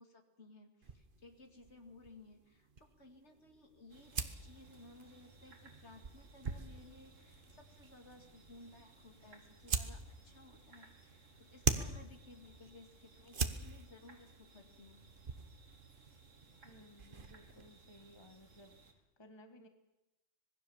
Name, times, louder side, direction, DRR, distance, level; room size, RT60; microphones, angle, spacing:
voice 1, 0.0-15.0, left 2 dB, 60° left, 5 dB, 2.7 m, -59 dB
sound 1, 0.8-17.7, right 5 dB, 45° right, 1.3 m, -44 dB
sound 2, 3.9-18.9, right 3 dB, 80° right, 2.8 m, -62 dB
voice 2, 16.6-19.7, left 1 dB, 20° left, 7 dB, 1.6 m, -59 dB
25.5 x 19.5 x 7.1 m, 0.96 s
omnidirectional pair, 1.3 m